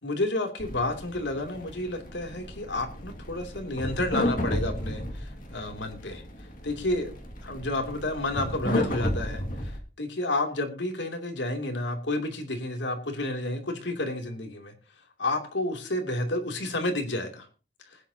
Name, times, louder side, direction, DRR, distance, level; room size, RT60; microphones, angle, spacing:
voice 1, 0.0-6.2 6.6-7.1 7.4-9.7 10.0-14.7 15.2-17.5, left 2 dB, 80° left, 4 dB, 2.9 m, -30 dB
sound 1, 0.6-9.8, left 1 dB, 45° left, 2.3 m, -33 dB
21.0 x 10.0 x 2.9 m, 0.33 s
head